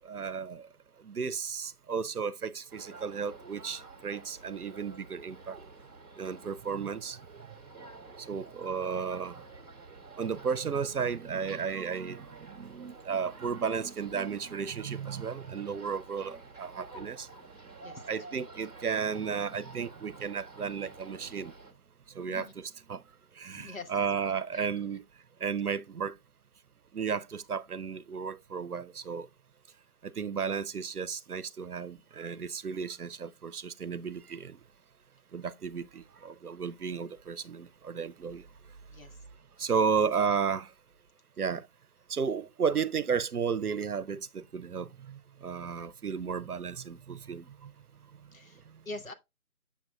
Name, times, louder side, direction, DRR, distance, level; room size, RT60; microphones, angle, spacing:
voice 1, 0.1-0.6 1.0-5.6 6.2-7.2 8.3-9.3 10.2-12.3 12.6-17.3 18.1-21.5 22.2-22.5 22.9-23.0 23.4-25.0 25.4-26.1 26.9-29.3 30.2-34.6 35.3-38.4 39.6-40.7 41.4-41.6 42.1-47.4, right 6 dB, 75° right, 0.7 m, -33 dB
sound 1, 2.7-21.7, right 3 dB, 25° right, 1.1 m, -50 dB
voice 2, 17.5-18.4 22.3-22.5 23.5-24.1 24.5-24.7 38.9-39.2 39.6-39.7 48.3-49.1, left 3 dB, 60° left, 1.2 m, -45 dB
7.0 x 6.4 x 2.3 m
figure-of-eight pair, 155°, 45 cm